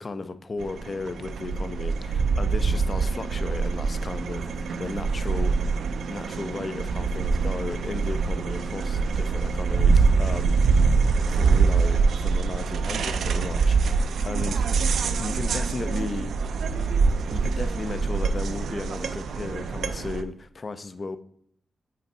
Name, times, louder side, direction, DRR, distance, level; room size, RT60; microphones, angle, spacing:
voice 1, 0.0-5.5 6.1-10.8 11.2-16.3 17.3-21.2, left 3 dB, 35° left, 0.4 m, -35 dB
sound 1, 0.6-20.2, right 4 dB, 80° right, 0.4 m, -24 dB
6.1 x 4.4 x 4.2 m
wide cardioid pair, 135°, 0 cm